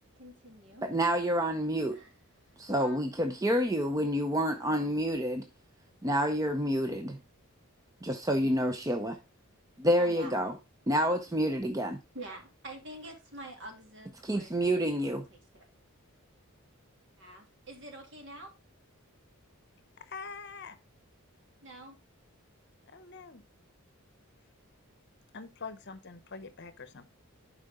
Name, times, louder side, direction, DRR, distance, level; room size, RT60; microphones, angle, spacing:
voice 1, 0.0-0.9 1.9-3.0 4.6-5.2 10.0-10.4 12.1-15.7 17.2-18.5 21.6-22.0, right 1 dB, 55° right, 2.7 m, -48 dB
voice 2, 0.8-2.0 2.6-5.5 6.0-7.2 8.0-9.2 9.8-10.5 10.9-12.0 14.2-15.3, equal, 15° right, 0.6 m, -28 dB
voice 3, 20.0-20.8 22.9-23.4 25.3-27.1, left 4 dB, 50° left, 0.8 m, -44 dB
11.5 x 4.8 x 3.6 m
head